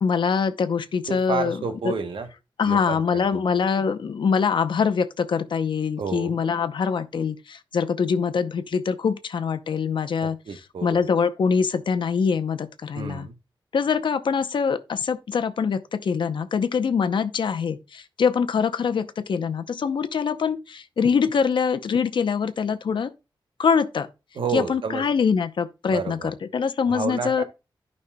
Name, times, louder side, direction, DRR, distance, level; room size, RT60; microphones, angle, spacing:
voice 1, 0.0-1.6 1.8-1.9 2.6-10.4 10.8-13.3 13.7-23.1 23.6-24.1 24.5-27.4, left 6 dB, 70° left, 0.7 m, -24 dB
voice 2, 1.1-2.3 2.6-3.4 6.0-6.4 10.2-11.0 12.9-13.4 24.3-25.0 25.9-26.3 26.9-27.4, right 5 dB, 80° right, 1.0 m, -30 dB
13.5 x 5.4 x 2.2 m
wide cardioid pair, 165°, 9 cm